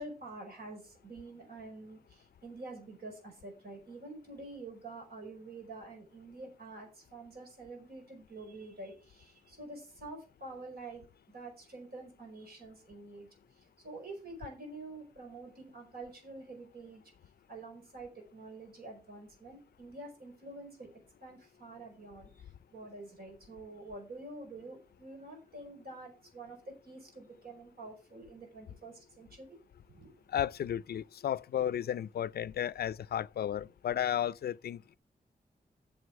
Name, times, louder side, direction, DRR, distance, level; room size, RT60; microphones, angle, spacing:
voice 1, 0.0-13.3 13.8-17.0 17.5-20.9 21.2-22.3 22.7-29.6 29.9-30.1, right 2 dB, 80° right, 5.0 m, -47 dB
voice 2, 30.3-35.0, left 10 dB, 85° left, 0.4 m, -33 dB
8.1 x 6.9 x 6.1 m
wide cardioid pair, 150°, 16 cm